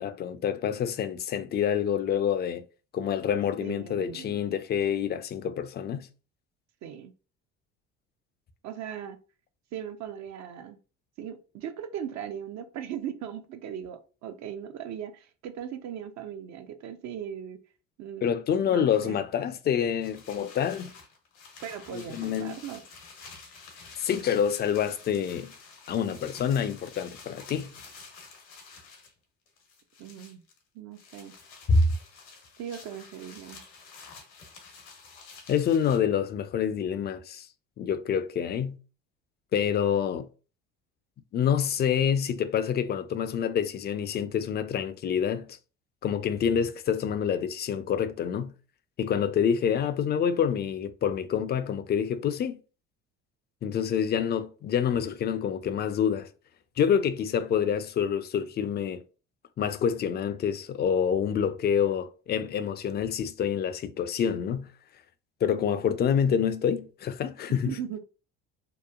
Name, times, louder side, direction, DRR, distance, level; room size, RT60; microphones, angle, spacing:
voice 1, 0.0-2.6 2.9-6.1 18.2-20.9 21.9-22.6 24.0-25.5 25.9-27.7 31.7-31.8 35.5-37.5 37.8-38.8 39.5-40.3 41.3-45.6 46.0-48.5 49.0-52.6 53.6-56.3 56.8-59.0 59.6-64.7 65.4-67.8, left 8 dB, 30° left, 0.4 m, -27 dB
voice 2, 3.6-4.4 6.8-7.1 8.6-9.2 9.7-10.8 11.2-17.6 18.0-18.3 18.6-19.2 21.6-22.8 30.0-30.4 30.7-31.3 32.6-33.6 67.5-68.0, right 9 dB, 55° right, 0.5 m, -38 dB
sound 1, 20.0-29.1 29.5-30.6 30.9-36.0, left 4 dB, 80° left, 1.0 m, -49 dB
2.9 x 2.1 x 2.3 m
hypercardioid pair, 65°, 34 cm